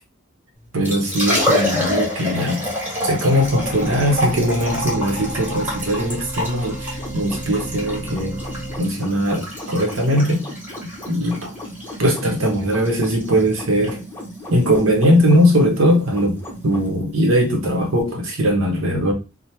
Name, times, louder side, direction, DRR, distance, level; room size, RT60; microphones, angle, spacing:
Liquid, 0.6-18.0, left 1 dB, 10° right, 1.4 m, -28 dB
voice 1, 0.7-2.6 3.0-8.4 8.8-10.5 11.1-11.5 12.0-14.0 14.5-16.4 16.6-19.1, equal, 70° right, 0.8 m, -19 dB
sound 1, 3.4-8.8, right 1 dB, 40° right, 1.3 m, -33 dB
sound 2, 6.9-16.9, equal, 10° left, 0.7 m, -36 dB
2.9 x 2.0 x 3.2 m
head